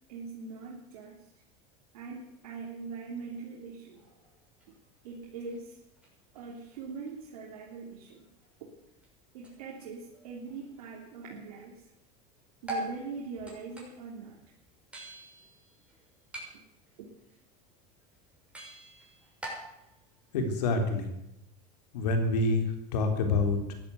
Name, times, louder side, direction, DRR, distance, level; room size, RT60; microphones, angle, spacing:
voice 1, 0.1-1.3 1.9-4.1 5.0-5.8 6.3-8.3 8.6-8.7 9.3-11.8 12.6-14.4 16.5-16.6 17.0-17.1, right 4 dB, 85° right, -3 dB, 3.3 m, -42 dB
sound 1, 3.9-11.7 12.0-21.1, right 1 dB, 5° right, 6.5 m, -46 dB
voice 2, 20.3-21.1 21.9-22.6 22.9-23.7, left 3 dB, 85° left, 5 dB, 3.6 m, -27 dB
15.0 x 11.0 x 8.2 m, 0.84 s
supercardioid pair, 115°, 20 cm